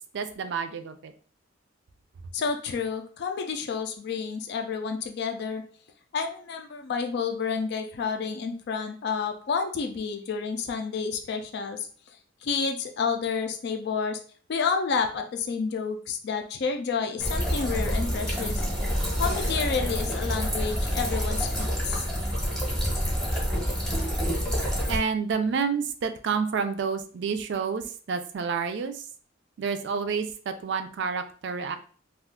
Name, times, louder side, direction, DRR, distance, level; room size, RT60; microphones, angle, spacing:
voice 1, 0.1-1.1 24.9-29.1 29.6-31.8, right 5 dB, 65° right, 9 dB, 0.4 m, -29 dB
voice 2, 2.3-5.6 6.1-11.9 12.4-14.2 14.5-18.6 19.1-22.1, left 5 dB, 60° left, 5 dB, 0.4 m, -30 dB
sound 1, 17.2-25.0, equal, ahead, 0.8 m, -27 dB
2.4 x 2.3 x 3.5 m, 0.44 s
head